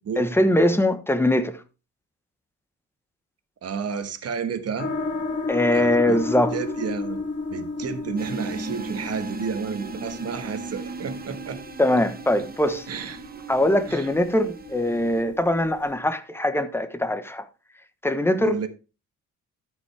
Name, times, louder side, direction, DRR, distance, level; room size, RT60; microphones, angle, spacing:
voice 1, 0.2-1.6 5.5-6.5 11.8-12.9 13.5-17.5 18.0-18.6, left 1 dB, 10° left, 1.1 m, -22 dB
voice 2, 3.6-4.9 5.7-6.2 6.5-7.2 7.5-11.6 12.9-13.2 13.9-14.1 18.3-18.7, right 6 dB, 55° right, 1.5 m, -31 dB
sound 1, 4.8-15.9, left 3 dB, 40° left, 3.0 m, -34 dB
sound 2, 8.2-15.2, right 3 dB, 30° right, 1.2 m, -37 dB
13.0 x 5.5 x 3.4 m
cardioid pair, 90°, 30 cm